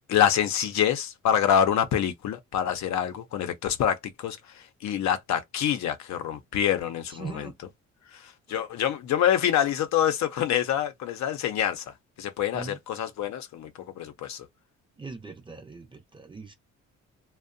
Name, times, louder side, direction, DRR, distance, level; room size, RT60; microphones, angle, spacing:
voice 1, 0.1-7.5 8.1-11.8 12.2-13.7 14.0-14.5, left 9 dB, 65° left, 0.6 m, -26 dB
voice 2, 7.1-7.5 8.5-8.6 12.5-12.8 15.0-16.5, right 3 dB, 15° right, 0.6 m, -40 dB
2.6 x 2.1 x 2.5 m
cardioid pair, 90°, 30 cm